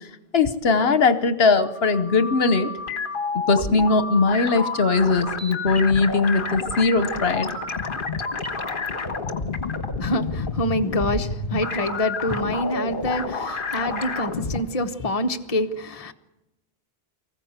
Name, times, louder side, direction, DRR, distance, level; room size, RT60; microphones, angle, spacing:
voice 1, 0.3-2.7 3.5-7.5, left 4 dB, 70° left, 11 dB, 1.2 m, -20 dB
sound 1, 1.4-14.6, left 4 dB, 55° left, 1.6 m, -29 dB
voice 2, 10.0-16.1, left 1 dB, 35° left, 6 dB, 1.1 m, -26 dB
24.5 x 15.5 x 8.1 m, 0.95 s
omnidirectional pair, 1.1 m